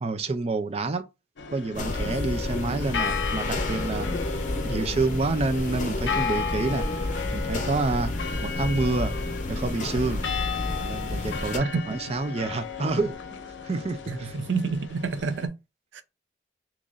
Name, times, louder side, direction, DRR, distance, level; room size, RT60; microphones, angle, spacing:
voice 1, 0.0-1.0 1.5-4.1 4.5-8.1 8.4-9.1 9.5-10.2 10.8-13.2 13.6-14.3, right 3 dB, 35° right, 0.5 m, -28 dB
sound 1, 1.4-15.5, left 6 dB, 80° left, 0.6 m, -35 dB
sound 2, 1.7-11.6, left 1 dB, 45° left, 0.8 m, -30 dB
voice 2, 14.1-15.6 15.9-16.0, right 4 dB, 85° right, 0.5 m, -29 dB
3.8 x 3.0 x 2.5 m
head